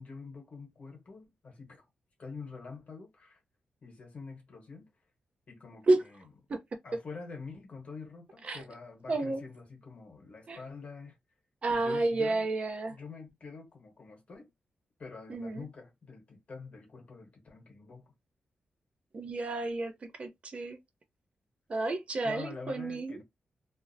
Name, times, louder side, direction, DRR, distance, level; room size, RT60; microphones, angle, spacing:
voice 1, 0.0-1.8 2.2-3.4 3.8-4.9 5.5-6.2 6.8-11.2 11.7-12.5 12.9-14.5 15.0-18.1 22.2-23.2, left 4 dB, 50° left, 1.0 m, -46 dB
voice 2, 9.1-9.4 10.5-10.6 11.6-13.0 15.3-15.6 19.1-20.8 21.7-23.2, right 2 dB, 40° right, 0.5 m, -30 dB
2.4 x 2.0 x 2.5 m
wide cardioid pair, 130°, 3 cm